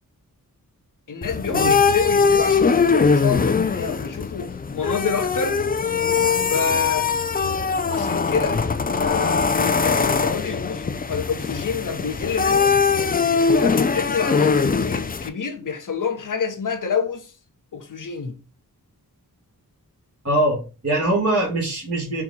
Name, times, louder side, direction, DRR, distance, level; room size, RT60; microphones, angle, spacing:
voice 1, 1.1-5.6 6.5-7.1 7.9-12.7 13.5-17.3 17.7-18.3, left 6 dB, 55° left, 0.8 m, -27 dB
sound 1, 1.2-15.3, left 5 dB, 25° left, 0.3 m, -21 dB
voice 2, 20.2-22.2, right 1 dB, 40° right, 1.6 m, -22 dB
4.5 x 2.3 x 3.9 m
cardioid pair, 50°, 38 cm